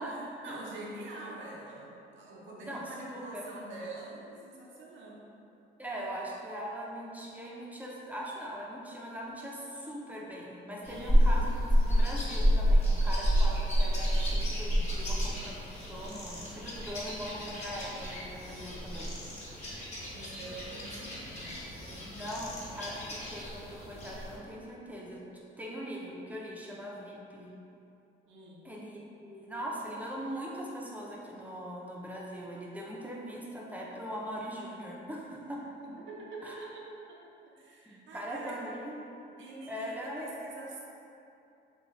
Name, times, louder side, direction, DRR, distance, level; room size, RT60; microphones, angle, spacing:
voice 1, 0.0-5.2 10.8-11.5 20.1-22.3 28.3-28.7 35.8-37.2 37.5-38.6 39.3-40.8, right 2 dB, 75° right, -4 dB, 0.7 m, -45 dB
voice 2, 2.6-3.4 5.8-11.5 11.9-15.6 15.9-19.1 22.2-25.2 25.6-27.5 28.6-35.6 36.4-36.7 37.9-38.9 39.7-40.3, equal, 10° right, -4 dB, 0.5 m, -41 dB
sound 1, 10.8-24.4, equal, 35° left, 1.2 m, -30 dB
3.4 x 2.7 x 3.0 m, 2.7 s
cardioid pair, 90°, 20 cm